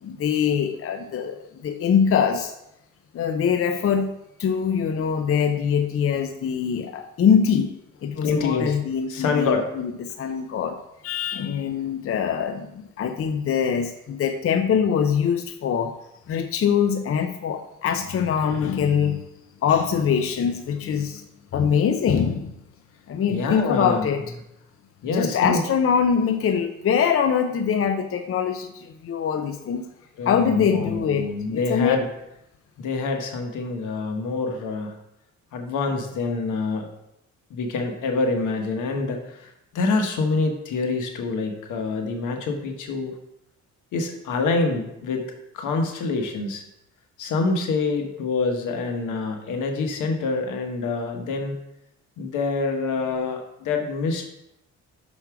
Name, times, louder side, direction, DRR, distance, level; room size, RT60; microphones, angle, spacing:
voice 1, 0.0-2.5 3.1-4.1 4.4-7.7 8.0-10.8 11.0-15.9 16.3-19.2 19.6-21.2 21.5-22.5 23.1-24.2 25.1-29.9 30.2-32.0, left 7 dB, 50° left, 7 dB, 0.6 m, -23 dB
voice 2, 8.2-8.7 9.1-9.7 23.3-24.1 25.0-25.6 30.2-32.1 32.8-34.9 35.5-36.9 37.5-43.1 43.9-45.2 45.5-46.6 47.2-51.5 52.2-54.2, left 3 dB, 80° left, 4 dB, 1.2 m, -26 dB
6.1 x 5.4 x 4.7 m, 0.84 s
cardioid pair, 90°, 30 cm